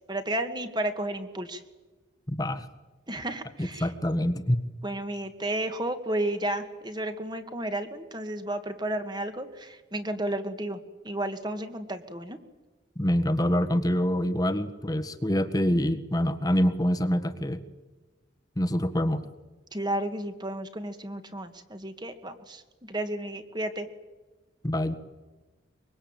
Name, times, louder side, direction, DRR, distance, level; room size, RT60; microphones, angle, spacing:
voice 1, 0.1-1.6 3.1-3.9 4.8-10.8 11.0-12.4 19.7-23.9, right 1 dB, 20° right, 8 dB, 2.0 m, -32 dB
voice 2, 2.3-2.7 3.6-4.6 12.9-17.6 18.6-19.2 24.6-25.0, equal, 20° left, 10 dB, 1.5 m, -26 dB
24.5 x 23.0 x 9.0 m, 1.2 s
head